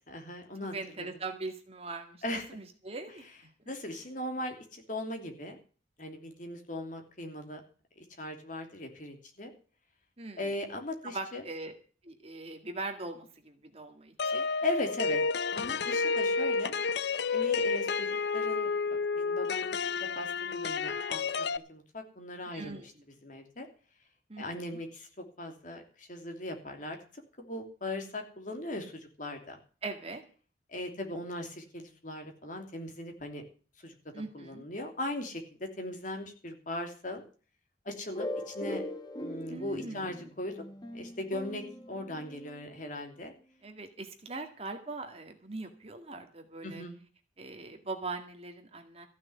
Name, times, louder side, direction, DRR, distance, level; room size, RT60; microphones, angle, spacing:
voice 1, 0.1-1.1 2.2-2.4 3.7-5.6 6.0-7.6 8.0-9.5 10.4-11.4 14.6-15.2 15.5-16.7 17.3-18.7 19.1-21.2 21.7-22.8 23.2-23.7 24.4-25.1 25.4-29.6 30.7-33.4 33.8-33.9 34.3-37.2 37.8-38.8 39.2-40.6 40.9-43.3 46.6-47.0, left 1 dB, 45° left, 4 dB, 3.1 m, -38 dB
voice 2, 0.7-3.5 10.2-10.5 11.0-11.7 12.0-14.5 22.5-22.9 24.3-24.8 29.8-30.2 34.1-34.7 39.5-40.3 43.6-46.8 47.4-49.1, right 3 dB, 35° right, 5 dB, 2.0 m, -41 dB
sound 1, 14.2-21.6, left 4 dB, 70° left, 0.6 m, -30 dB
sound 2, 38.1-42.7, left 1 dB, 25° left, 1.3 m, -41 dB
14.5 x 6.5 x 9.6 m, 0.39 s
head